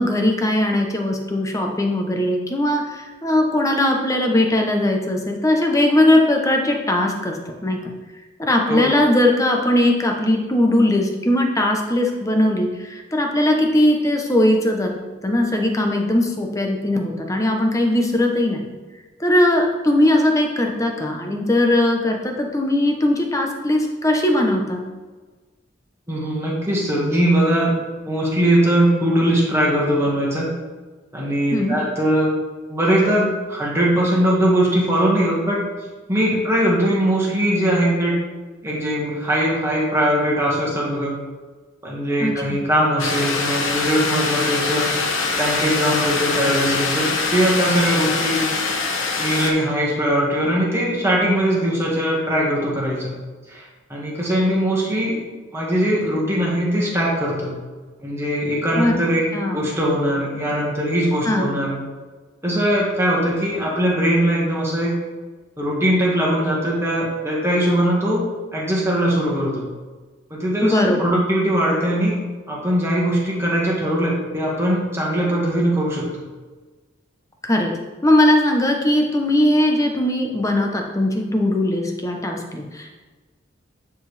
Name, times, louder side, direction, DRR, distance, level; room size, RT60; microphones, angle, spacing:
voice 1, 0.0-7.4 7.6-7.8 8.4-14.9 15.2-18.6 19.2-24.8 31.5-31.8 42.2-42.6 58.8-58.9 59.3-59.7 61.2-61.5 70.6-71.1 77.4-77.7 78.0-82.9, left 1 dB, 15° left, 2 dB, 0.8 m, -19 dB
voice 2, 26.1-27.7 28.0-30.5 31.1-32.3 32.7-35.6 36.1-38.2 38.6-41.2 41.8-44.9 45.3-48.5 49.2-53.1 53.5-55.2 55.5-57.6 58.0-59.2 59.5-61.8 62.4-64.9 65.6-68.2 68.5-69.6 70.3-72.2 72.5-76.1, equal, 15° right, -5 dB, 1.8 m, -20 dB
sound 1, 43.0-49.5, left 3 dB, 85° left, 1.0 m, -23 dB
9.4 x 4.7 x 3.4 m, 1.3 s
head